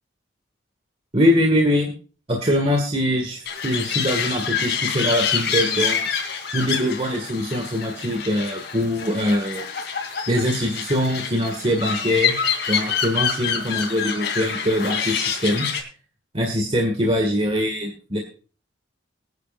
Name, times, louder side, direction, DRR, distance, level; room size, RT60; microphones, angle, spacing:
voice 1, 1.1-1.9 2.3-6.0 6.5-9.6 10.3-12.4 12.7-15.7 16.3-18.2, equal, 30° right, 2 dB, 1.9 m, -22 dB
sound 1, 3.5-15.8, left 7 dB, 65° left, 3.0 m, -26 dB
23.5 x 9.7 x 2.5 m, 0.36 s
head